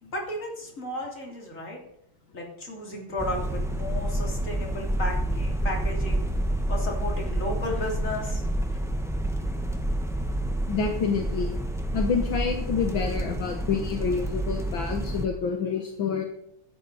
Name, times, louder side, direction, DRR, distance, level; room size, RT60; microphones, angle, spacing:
voice 1, 0.0-1.8 2.3-6.2 6.7-8.4, left 1 dB, 35° left, 0 dB, 3.5 m, -34 dB
sound 1, 3.2-15.3, right 1 dB, 5° right, 0.6 m, -28 dB
voice 2, 10.7-11.6 11.9-16.2, left 6 dB, 70° left, 3 dB, 2.0 m, -28 dB
15.5 x 12.0 x 4.1 m, 0.77 s
omnidirectional pair, 2.3 m